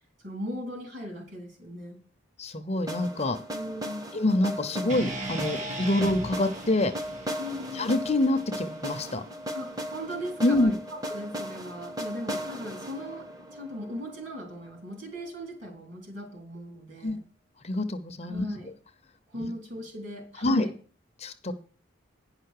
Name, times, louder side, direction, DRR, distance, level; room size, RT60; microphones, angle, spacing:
voice 1, 0.2-2.0 3.5-4.0 7.4-8.0 9.5-17.2 18.3-18.7 19.3-20.7, equal, 55° right, 2 dB, 3.7 m, -38 dB
voice 2, 2.4-3.4 4.1-6.9 7.7-9.2 10.4-10.7 17.0-17.2 17.6-18.5 19.4-19.5 20.4-20.7 21.2-21.5, left 2 dB, 30° left, 8 dB, 0.7 m, -26 dB
sound 1, 2.9-14.8, equal, 15° right, 0.8 m, -37 dB
sound 2, 4.9-9.1, right 1 dB, 35° right, 1.4 m, -38 dB
10.0 x 5.7 x 6.6 m, 0.41 s
head